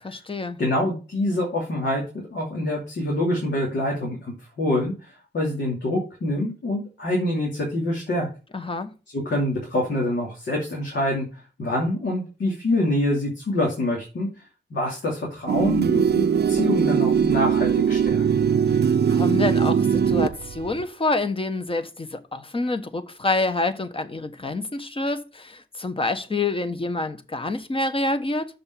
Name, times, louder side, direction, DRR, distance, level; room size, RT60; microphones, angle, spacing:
voice 1, 0.0-0.6 8.5-8.9 19.1-28.5, left 2 dB, 30° left, 1.2 m, -27 dB
voice 2, 0.6-2.0 2.3-8.3 9.1-11.3 11.6-14.3 14.7-18.2, left 1 dB, 70° left, 2.8 m, -25 dB
sound 1, 15.5-20.8, right 7 dB, 60° right, 0.6 m, -21 dB
6.9 x 5.4 x 6.9 m
wide cardioid pair, 90°, 19 cm